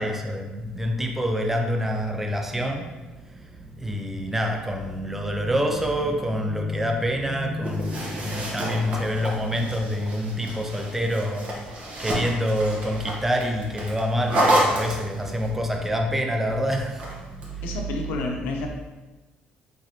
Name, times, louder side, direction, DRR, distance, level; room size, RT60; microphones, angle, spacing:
voice 1, 0.0-17.8, equal, 10° right, 2 dB, 0.5 m, -27 dB
sound 1, 7.6-15.5 16.7-17.5, right 1 dB, 50° right, 1.0 m, -29 dB
voice 2, 17.6-18.7, left 3 dB, 80° left, 2 dB, 0.6 m, -30 dB
3.9 x 3.2 x 2.8 m, 1.2 s
cardioid pair, 100°, 3 cm